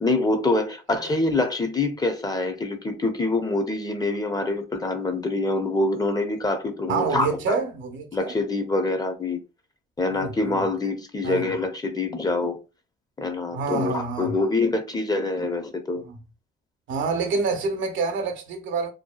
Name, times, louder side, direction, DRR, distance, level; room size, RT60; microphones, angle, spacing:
voice 1, 0.0-7.6 8.1-9.4 10.0-12.6 13.2-16.0, left 2 dB, 20° left, 0.6 m, -25 dB
voice 2, 6.9-8.3 10.1-10.6 11.2-11.5 13.5-14.3 16.0-16.2 16.9-18.9, right 4 dB, 75° right, 0.7 m, -27 dB
2.7 x 2.2 x 2.2 m
cardioid pair, 90°, 20 cm